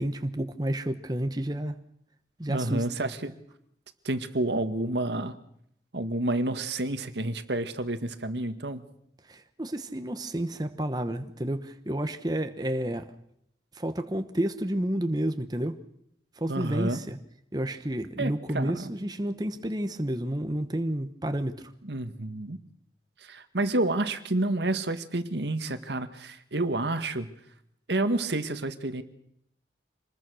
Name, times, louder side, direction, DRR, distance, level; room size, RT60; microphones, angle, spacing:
voice 1, 0.0-1.7 2.4-2.8 9.3-13.1 13.7-15.8 16.4-17.2 17.5-21.7, right 1 dB, 25° right, 8 dB, 1.1 m, -30 dB
voice 2, 2.5-3.3 4.0-5.4 5.9-8.8 16.5-17.0 18.2-18.9 21.8-22.6 23.2-27.3 27.9-29.0, right 2 dB, 80° right, 10 dB, 1.7 m, -29 dB
26.0 x 20.5 x 6.4 m, 0.74 s
head